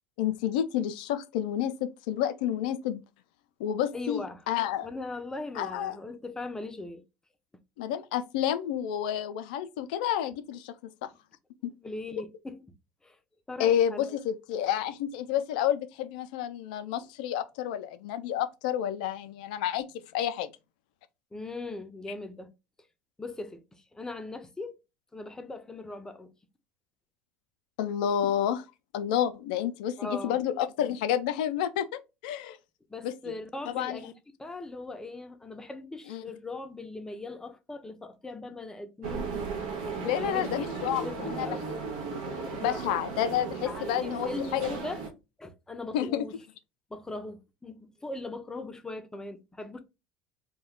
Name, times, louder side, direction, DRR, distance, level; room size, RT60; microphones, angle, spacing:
voice 1, 0.2-3.0 3.6-4.9 5.6-6.0 7.8-10.7 11.0-11.1 11.6-11.7 13.6-19.9 20.1-20.5 27.8-28.6 28.9-31.9 32.2-32.6 33.0-33.1 33.7-34.0 36.1-36.2 40.0-41.0 41.3-41.5 42.1-44.7 45.9-46.3, left 10 dB, 75° left, 0.4 m, -29 dB
voice 2, 3.9-4.4 4.8-7.0 11.8-12.7 13.0-13.2 13.5-14.2 21.3-22.5 23.2-24.8 25.1-26.3 30.0-30.4 32.9-34.1 34.4-39.3 39.8-40.7 41.0-41.7 42.5-42.8 43.6-45.0 45.4-46.4 46.9-49.8, left 2 dB, 15° left, 0.6 m, -39 dB
sound 1, 39.0-45.1, right 5 dB, 75° right, 0.6 m, -36 dB
2.3 x 2.2 x 3.6 m
hypercardioid pair, 80°, 4 cm